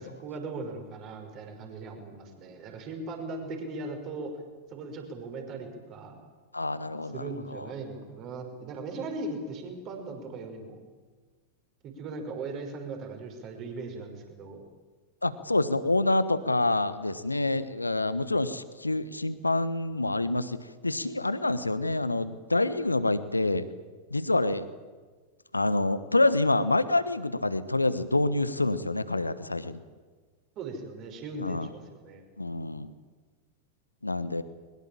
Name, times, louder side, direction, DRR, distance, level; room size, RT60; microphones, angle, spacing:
voice 1, 0.0-4.3 4.7-6.2 7.0-10.8 11.8-14.6 30.6-32.2, right 3 dB, 35° right, 4 dB, 5.5 m, -38 dB
voice 2, 6.5-7.3 7.5-7.6 15.2-20.6 20.8-23.6 24.1-24.7 25.5-29.8 31.4-31.7 32.4-32.9 34.0-34.4, left 2 dB, 85° left, 15 dB, 1.2 m, -27 dB
22.5 x 20.5 x 8.8 m, 1.4 s
figure-of-eight pair, 90°, 0 cm